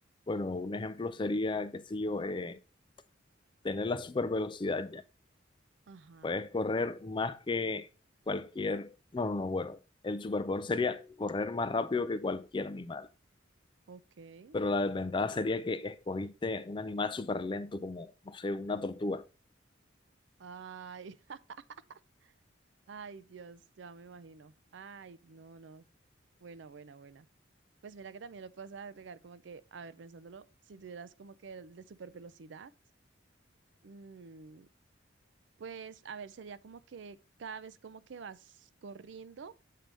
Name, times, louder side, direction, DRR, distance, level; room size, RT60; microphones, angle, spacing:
voice 1, 0.3-2.6 3.6-5.0 6.2-7.9 8.3-9.8 10.0-13.1 14.5-19.2, left 3 dB, 25° left, 0.4 m, -33 dB
voice 2, 5.9-6.4 13.9-14.6 20.4-21.6 21.9-22.3 22.9-25.8 26.4-27.3 27.8-32.7 33.8-34.7 35.6-39.5, right 5 dB, 70° right, 0.4 m, -48 dB
7.5 x 3.4 x 5.1 m
head